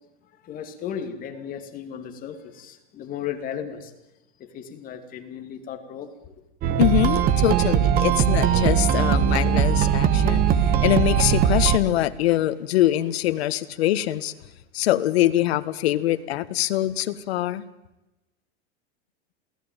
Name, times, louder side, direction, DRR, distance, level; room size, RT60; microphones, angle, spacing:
voice 1, 0.3-3.9 4.4-6.3, left 8 dB, 25° left, 2.5 m, -35 dB
sound 1, 6.6-11.8, right 9 dB, 25° right, 1.3 m, -20 dB
voice 2, 6.8-14.3 14.7-17.6, left 14 dB, 65° left, 1.8 m, -23 dB
27.5 x 18.0 x 9.2 m
supercardioid pair, 160°, 34 cm